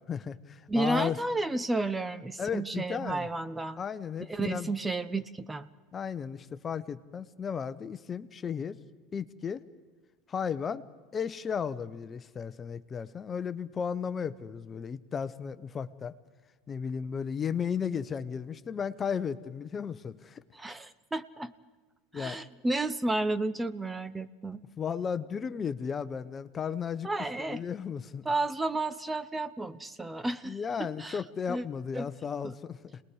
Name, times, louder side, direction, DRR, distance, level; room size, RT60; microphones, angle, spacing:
voice 1, 0.0-1.2 2.4-3.3 3.8-4.7 5.9-8.8 9.1-9.6 10.3-10.8 11.1-16.1 16.7-20.4 22.1-22.4 24.8-27.1 27.4-28.2 30.4-33.0, left 7 dB, 30° left, 13 dB, 0.9 m, -34 dB
voice 2, 0.7-3.8 4.2-5.7 20.5-21.5 22.1-24.6 27.0-27.6 28.2-31.2 31.5-31.6 31.9-32.1 32.4-32.5, right 2 dB, 10° right, 14 dB, 0.8 m, -32 dB
27.5 x 20.0 x 4.9 m, 1.4 s
supercardioid pair, 100°, 0 cm